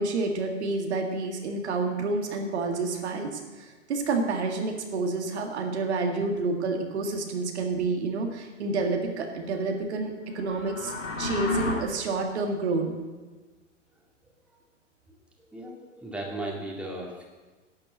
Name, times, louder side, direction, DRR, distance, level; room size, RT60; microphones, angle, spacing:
voice 1, 0.0-12.9, right 3 dB, 60° right, 3 dB, 1.9 m, -29 dB
sound 1, 10.3-11.7, left 3 dB, 80° left, 2.6 m, -30 dB
voice 2, 15.5-17.2, right 1 dB, 5° right, -2 dB, 2.3 m, -36 dB
11.5 x 7.6 x 7.5 m, 1.3 s
figure-of-eight pair, 105°, 38 cm